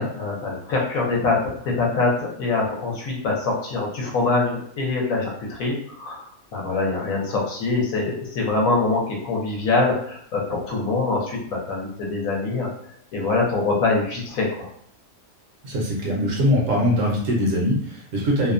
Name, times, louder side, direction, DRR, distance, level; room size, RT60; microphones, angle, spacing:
voice 1, 0.0-6.2 6.5-12.7 13.1-14.7, left 3 dB, 70° left, -2 dB, 1.1 m, -24 dB
voice 2, 15.6-18.5, equal, 65° right, -2 dB, 0.9 m, -22 dB
2.7 x 2.1 x 2.4 m, 0.64 s
omnidirectional pair, 1.6 m